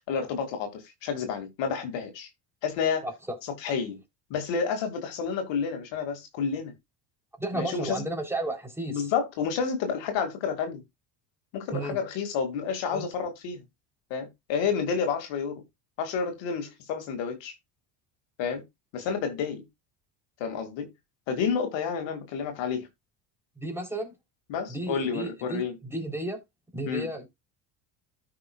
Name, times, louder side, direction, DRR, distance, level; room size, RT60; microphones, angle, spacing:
voice 1, 0.1-2.3 2.6-3.1 3.6-4.0 4.3-6.7 7.5-8.0 8.9-10.8 11.5-13.6 14.1-15.6 16.0-17.5 18.4-18.6 18.9-19.6 20.4-20.9 21.3-22.9 24.5-25.7 26.9-27.1, left 6 dB, 65° left, 2.2 m, -30 dB
voice 2, 3.0-3.4 7.4-9.0 11.7-12.0 12.9-13.1 23.6-24.1 24.7-26.4 26.7-27.3, right 2 dB, 5° right, 3.5 m, -33 dB
13.5 x 5.7 x 2.3 m
supercardioid pair, 80°, 47 cm